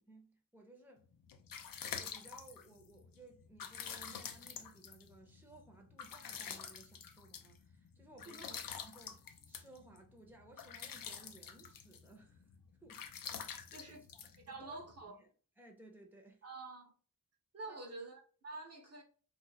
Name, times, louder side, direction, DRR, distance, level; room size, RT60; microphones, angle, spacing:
voice 1, 0.1-1.1 2.0-12.5 12.8-16.4 17.6-18.0, right 2 dB, 5° right, 0.9 m, -60 dB
sound 1, 1.1-15.0, left 7 dB, 70° left, 0.6 m, -48 dB
voice 2, 13.7-14.0 14.5-15.2 16.4-16.9 17.5-19.0, right 3 dB, 45° right, 0.9 m, -48 dB
2.5 x 2.4 x 4.0 m
cardioid pair, 55°, 35 cm